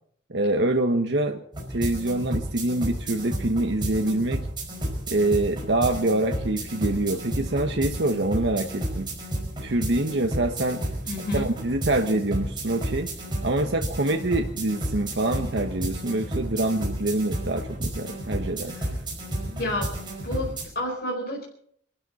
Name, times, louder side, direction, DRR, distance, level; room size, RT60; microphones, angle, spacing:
voice 1, 0.3-1.4 1.7-4.5 5.1-9.1 9.6-10.8 11.3-13.1 13.4-18.8, right 2 dB, 70° right, 4 dB, 1.0 m, -25 dB
sound 1, 1.5-20.7, right 1 dB, 25° right, 5.3 m, -32 dB
voice 2, 11.0-11.5 18.7-18.9 19.5-19.9 20.2-21.4, left 1 dB, 55° left, -2 dB, 4.5 m, -30 dB
25.5 x 12.5 x 4.2 m, 0.64 s
head